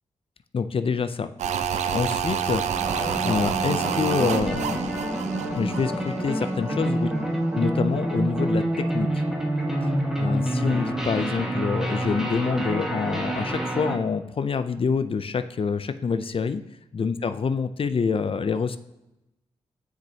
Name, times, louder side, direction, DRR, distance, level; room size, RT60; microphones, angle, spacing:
voice 1, 0.5-1.3 1.9-5.0 5.6-7.1 7.6-9.2 10.1-16.6 16.9-18.8, left 5 dB, 50° left, 11 dB, 0.5 m, -26 dB
sound 1, 1.4-6.6 6.8-6.9, right 8 dB, 85° right, 0.4 m, -28 dB
sound 2, 2.8-14.0, right 1 dB, 5° right, 1.4 m, -27 dB
7.4 x 6.2 x 2.8 m, 0.94 s
cardioid pair, 50°, 12 cm